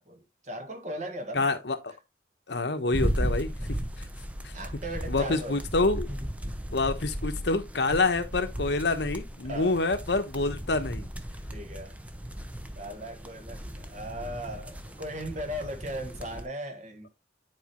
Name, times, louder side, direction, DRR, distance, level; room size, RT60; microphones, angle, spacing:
voice 1, 0.0-1.5 3.6-3.8 4.5-5.6 6.1-6.3 7.9-8.0 9.5-9.8 11.5-12.0 12.7-17.1, equal, 40° right, 1.5 m, -38 dB
voice 2, 1.3-1.9 2.5-4.1 4.4-4.5 5.1-6.1 6.7-11.1, left 3 dB, 65° left, 1.0 m, -27 dB
sound 1, 2.9-16.4, equal, 5° right, 0.6 m, -36 dB
9.6 x 4.8 x 3.0 m
head